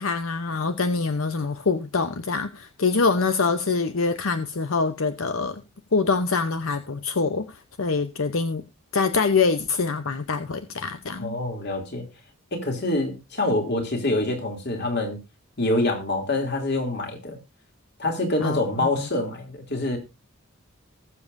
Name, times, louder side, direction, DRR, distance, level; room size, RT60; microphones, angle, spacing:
voice 1, 0.0-5.6 5.9-8.6 8.9-11.3 18.4-18.6, left 4 dB, 80° left, 0.8 m, -24 dB
voice 2, 11.2-12.1 12.5-15.2 15.6-17.4 18.0-20.0, left 2 dB, 50° left, 2.9 m, -26 dB
20.0 x 7.3 x 2.6 m
head